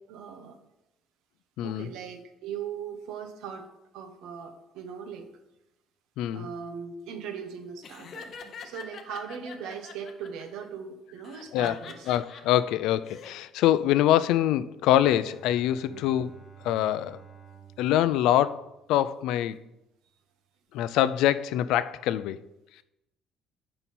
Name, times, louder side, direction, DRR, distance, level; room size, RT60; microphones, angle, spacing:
voice 1, 0.1-0.6 1.6-3.7 3.9-5.3 6.3-8.3 8.6-12.1 15.9-16.0, right 7 dB, 75° right, 7 dB, 1.0 m, -39 dB
voice 2, 1.6-1.9 6.2-6.5 11.5-11.8 12.1-16.3 16.6-17.2 17.8-19.6 20.7-22.4, left 12 dB, 75° left, 15 dB, 0.3 m, -24 dB
Laughter, 7.8-10.4 11.2-12.4 12.9-13.3, left 5 dB, 35° left, 0.7 m, -44 dB
Bowed string instrument, 14.9-19.3, right 7 dB, 10° left, 2.2 m, -52 dB
8.9 x 5.5 x 4.2 m, 0.91 s
cardioid pair, 175°, 0 cm